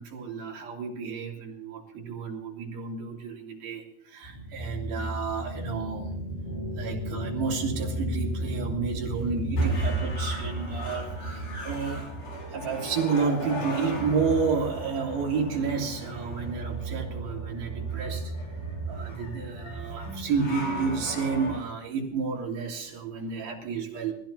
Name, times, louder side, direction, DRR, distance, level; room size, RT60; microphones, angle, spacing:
voice 1, 0.0-6.1 6.8-12.1 12.5-18.3 18.9-24.1, right 5 dB, 80° right, -2 dB, 4.9 m, -31 dB
sound 1, 4.2-21.6, right 1 dB, 75° left, 7.2 m, -33 dB
24.5 x 15.5 x 3.0 m, 0.70 s
omnidirectional pair, 4.1 m